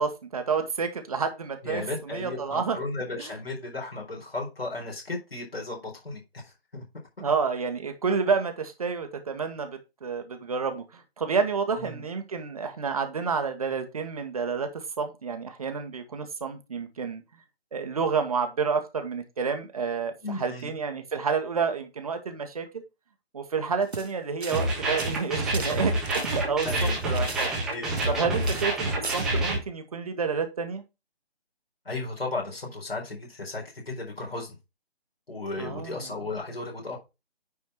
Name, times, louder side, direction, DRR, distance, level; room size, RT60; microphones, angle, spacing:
voice 1, 0.0-2.8 7.2-17.2 17.7-22.8 23.3-27.5 28.1-30.8 35.6-36.0, right 5 dB, 35° right, 1.2 m, -29 dB
voice 2, 1.6-6.8 11.8-12.0 20.2-20.7 26.6-28.6 31.8-34.6 35.3-37.0, left 2 dB, 65° left, 4.5 m, -35 dB
sound 1, 23.8-24.1 24.4-24.7 25.0-28.2 28.4-28.7 29.0-29.3, right 3 dB, 85° right, 1.3 m, -38 dB
sound 2, 24.5-29.6, right 1 dB, ahead, 0.8 m, -28 dB
9.6 x 4.3 x 4.4 m
figure-of-eight pair, 145°, 31 cm